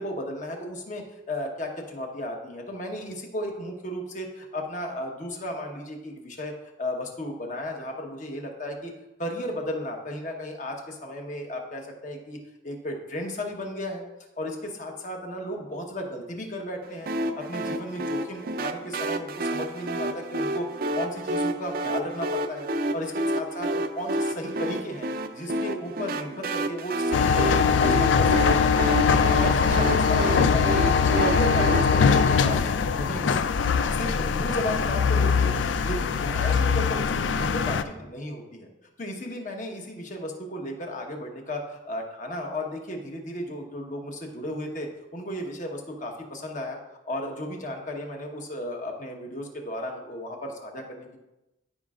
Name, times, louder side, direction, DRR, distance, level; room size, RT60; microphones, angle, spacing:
voice 1, 0.0-6.5 6.8-8.9 9.2-12.4 12.6-14.0 14.4-17.1 17.3-20.7 20.9-25.1 25.3-28.7 29.1-33.6 33.9-35.6 35.8-38.7 39.0-46.8 47.1-51.2, left 1 dB, 40° left, 1 dB, 1.2 m, -34 dB
sound 1, 17.1-31.8, right 1 dB, 50° right, 0.5 m, -30 dB
garbage collection, 27.1-37.8, left 6 dB, 75° left, 0.4 m, -22 dB
14.0 x 5.1 x 2.5 m, 0.97 s
head